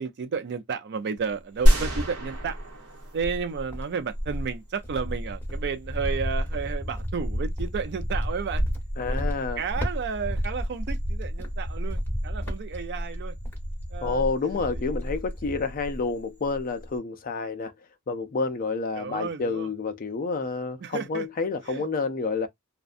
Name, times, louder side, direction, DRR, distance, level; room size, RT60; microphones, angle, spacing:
voice 1, 0.0-2.6 3.1-8.6 9.1-13.4 13.9-14.3 19.0-19.7 20.8-21.3 21.7-21.8, right 6 dB, 50° right, 0.4 m, -32 dB
Cricket, 1.2-2.7 3.2-16.1 16.4-17.0, equal, 10° left, 0.8 m, -31 dB
sound 1, 1.7-4.0, equal, 70° right, 1.0 m, -24 dB
voice 2, 9.0-9.6 14.0-17.7 18.1-22.5, left 4 dB, 40° left, 0.4 m, -29 dB
2.5 x 2.1 x 2.4 m
head